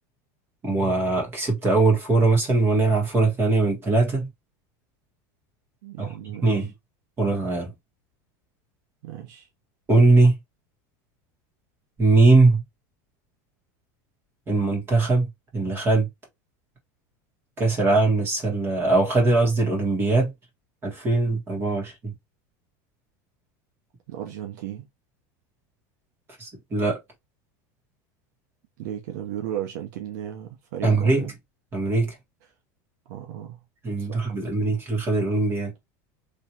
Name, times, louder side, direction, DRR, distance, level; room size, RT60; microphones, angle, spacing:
voice 1, 0.6-4.3 6.0-6.1 6.4-6.7 7.2-7.7 9.9-10.4 12.0-12.6 14.5-16.1 17.6-20.3 20.8-22.1 26.4-27.0 30.8-31.2 31.7-32.1 33.8-35.7, right 3 dB, 25° right, 1.9 m, -21 dB
voice 2, 5.8-6.7 9.0-9.5 24.1-24.9 28.8-31.3 33.1-33.6 34.0-34.1, right 10 dB, 75° right, 0.9 m, -35 dB
3.3 x 3.1 x 2.9 m
supercardioid pair, 140°, 10 cm